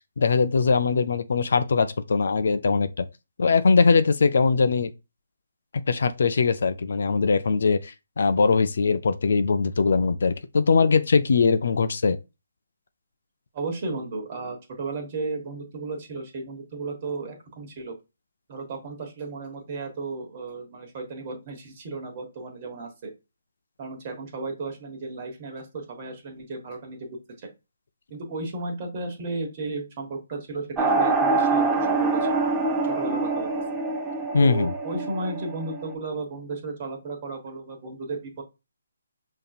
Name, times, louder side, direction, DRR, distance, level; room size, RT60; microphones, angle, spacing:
voice 1, 0.2-3.1 3.4-4.9 5.9-12.2 34.3-34.7, left 4 dB, 65° left, 0.4 m, -21 dB
voice 2, 13.5-18.0 18.5-23.1 23.8-27.1 27.4-27.5 28.1-32.3 32.8-33.6 34.4-38.4, right 3 dB, 35° right, 1.2 m, -34 dB
sound 1, 30.8-35.9, right 3 dB, 10° right, 0.6 m, -25 dB
5.3 x 2.7 x 2.3 m
hypercardioid pair, 155°, 0 cm